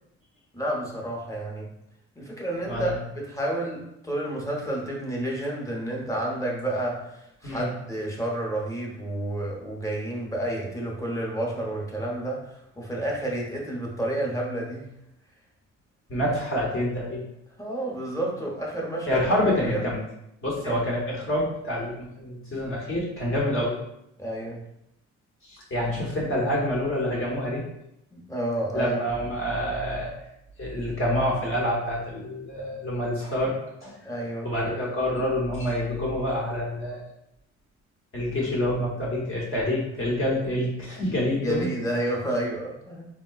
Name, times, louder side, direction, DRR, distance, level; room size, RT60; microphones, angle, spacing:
voice 1, 0.5-1.7 2.1-14.9 17.6-19.2 19.6-19.8 20.6-20.8 24.2-24.6 28.1-29.0 34.0-34.5 41.4-43.1, right 1 dB, 10° left, -3 dB, 0.8 m, -30 dB
voice 2, 2.7-3.0 7.4-7.7 16.1-17.2 19.1-20.0 20.4-23.7 25.4-27.6 28.7-30.1 30.6-33.6 33.8-33.9 34.4-37.0 38.1-41.7, left 1 dB, 45° left, -5 dB, 1.0 m, -27 dB
3.7 x 2.2 x 2.3 m, 0.82 s
cardioid pair, 90°, 30 cm